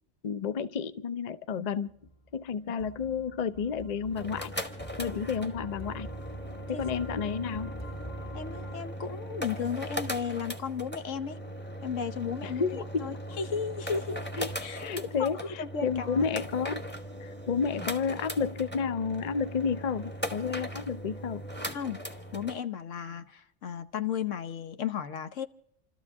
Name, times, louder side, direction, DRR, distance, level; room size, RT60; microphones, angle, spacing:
voice 1, 0.2-1.9 2.3-4.5 5.0-6.1 6.7-7.8 12.4-13.1 14.4-16.8 17.2-21.4, left 6 dB, 40° left, 0.7 m, -31 dB
sound 1, 1.9-9.6, equal, 25° left, 2.2 m, -46 dB
sound 2, 4.1-22.6, equal, 10° left, 1.2 m, -39 dB
voice 2, 8.3-11.4 11.8-14.2 14.6-14.9 15.2-16.2 21.7-22.0 22.3-25.5, left 7 dB, 70° left, 1.3 m, -34 dB
29.0 x 13.5 x 3.5 m
omnidirectional pair, 1.4 m